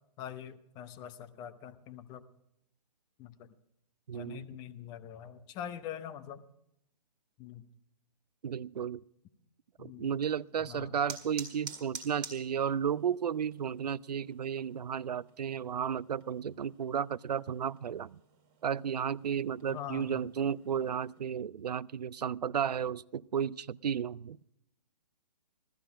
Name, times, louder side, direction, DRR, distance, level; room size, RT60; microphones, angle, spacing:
voice 1, 0.2-2.2 3.2-3.5 4.1-6.4 7.4-7.7 9.8-10.1 10.6-11.0 19.7-20.3, left 9 dB, 20° left, 12 dB, 0.7 m, -44 dB
voice 2, 4.1-4.5 8.4-9.0 9.8-18.2 18.6-24.6, right 8 dB, 75° right, 23 dB, 0.5 m, -33 dB
sound 1, 10.0-21.2, right 5 dB, 25° right, 1.9 m, -51 dB
16.5 x 13.0 x 4.9 m, 0.77 s
figure-of-eight pair, 135°, 21 cm